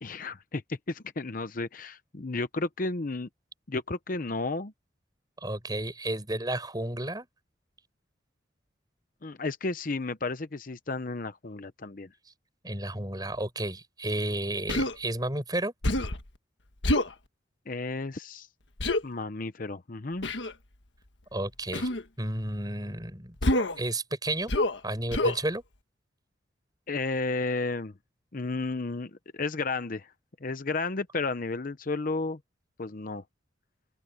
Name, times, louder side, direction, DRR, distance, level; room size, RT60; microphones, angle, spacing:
voice 1, 0.0-3.3 3.7-4.7 9.2-12.1 17.7-18.5 19.0-20.3 26.9-27.9 28.3-30.1 30.4-32.4 32.8-33.2, left 3 dB, 45° left, 0.8 m, -32 dB
voice 2, 5.4-7.3 12.6-15.7 21.3-21.9 22.2-23.4 23.8-24.5 24.8-25.6, right 1 dB, 20° right, 7.0 m, -32 dB
Human voice, 14.7-15.0 15.8-16.2 16.8-17.1 18.8-19.0 20.2-20.5 21.7-22.0 23.4-23.8 24.5-24.8 25.1-25.4, left 1 dB, 75° left, 1.5 m, -26 dB
open air
head